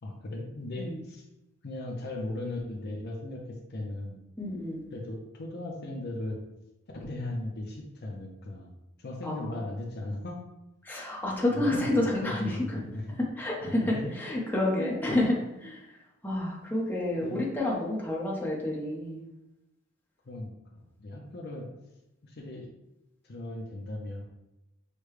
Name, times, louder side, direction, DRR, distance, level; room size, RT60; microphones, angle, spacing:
voice 1, 0.0-1.2 1.6-4.2 4.9-6.4 6.9-8.7 9.0-10.4 11.5-13.2 13.6-14.4 14.8-14.9 17.2-17.4 20.2-21.7 22.2-22.7 23.2-24.2, left 1 dB, 50° left, 0 dB, 0.6 m, -37 dB
voice 2, 4.4-4.8 9.2-9.5 10.8-12.8 13.4-15.8 16.2-19.2, left 1 dB, 10° left, -4 dB, 0.8 m, -29 dB
6.5 x 2.2 x 3.2 m, 0.91 s
head